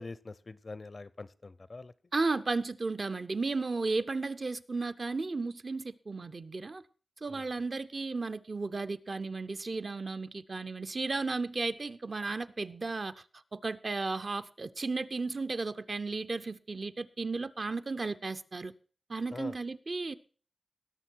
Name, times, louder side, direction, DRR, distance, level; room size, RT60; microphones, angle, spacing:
voice 1, 0.0-1.9 7.3-7.5 19.3-19.6, left 3 dB, 45° left, 0.5 m, -44 dB
voice 2, 2.1-6.8 7.2-13.2 13.5-18.7 19.1-20.1, right 3 dB, 50° right, 0.6 m, -34 dB
18.5 x 6.6 x 4.5 m
wide cardioid pair, 85°, 0 cm